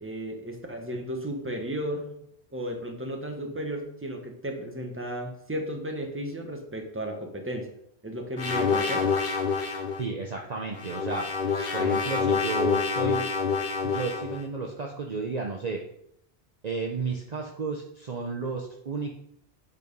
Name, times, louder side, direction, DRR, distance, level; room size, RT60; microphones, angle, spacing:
voice 1, 0.0-2.1 2.5-7.7 8.0-9.1, equal, 10° right, 3 dB, 1.2 m, -34 dB
sound 1, 8.4-10.0 10.7-14.4, left 5 dB, 50° left, 1.1 m, -27 dB
voice 2, 10.0-11.4 11.7-13.3 13.8-15.8 16.6-19.1, right 4 dB, 45° right, 1 dB, 0.8 m, -32 dB
8.3 x 4.6 x 5.3 m, 0.73 s
omnidirectional pair, 1.1 m